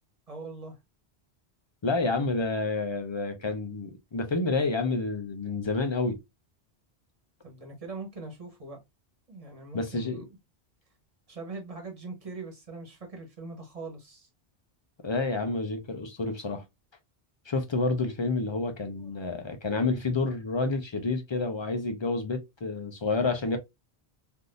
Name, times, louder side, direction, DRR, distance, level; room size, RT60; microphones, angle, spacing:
voice 1, 0.3-0.8 7.4-8.8 9.3-10.2 11.3-14.3 18.9-19.1, right 3 dB, 35° right, 1.1 m, -41 dB
voice 2, 1.8-6.2 9.7-10.2 15.0-16.6 17.5-23.6, left 3 dB, 40° left, 0.4 m, -29 dB
3.5 x 2.5 x 2.5 m
omnidirectional pair, 1.1 m